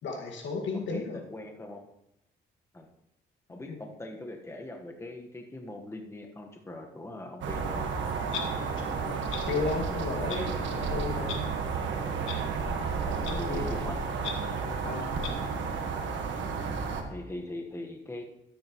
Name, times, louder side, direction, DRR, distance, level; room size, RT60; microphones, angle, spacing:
voice 1, 0.0-1.2 3.7-3.8 8.5-11.4 13.1-14.0 14.8-15.2, left 4 dB, 70° left, 2 dB, 1.9 m, -35 dB
voice 2, 0.7-1.8 2.7-2.9 3.5-7.8 13.0-13.9 17.1-18.2, left 2 dB, 15° left, 2 dB, 1.3 m, -41 dB
sound 1, 7.4-17.0, right 5 dB, 75° right, 1.4 m, -32 dB
Clock, 8.3-8.5 9.3-9.4 10.3-10.4 11.3-11.4 12.3-12.4 13.2-13.3 14.2-14.3 15.2-15.3, left 8 dB, 90° left, 1.3 m, -35 dB
13.5 x 8.9 x 3.0 m, 0.84 s
cardioid pair, 90°, 20 cm